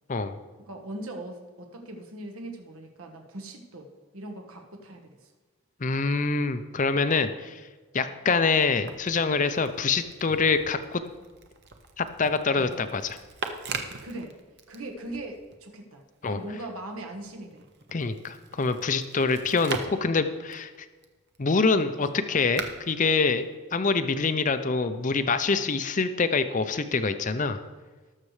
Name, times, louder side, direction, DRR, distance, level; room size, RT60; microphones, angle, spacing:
voice 1, 0.7-5.3 12.6-12.7 14.0-14.4 14.7-17.7, right 1 dB, 70° right, 4 dB, 1.4 m, -40 dB
voice 2, 5.8-7.7 7.9-11.0 12.0-13.2 16.2-16.4 17.9-20.7 21.4-27.6, left 4 dB, 35° left, 10 dB, 0.5 m, -25 dB
sound 1, 8.6-15.6 15.9-24.1 24.9-25.7, right 4 dB, 50° right, 0.9 m, -42 dB
19.5 x 6.6 x 3.3 m, 1.4 s
head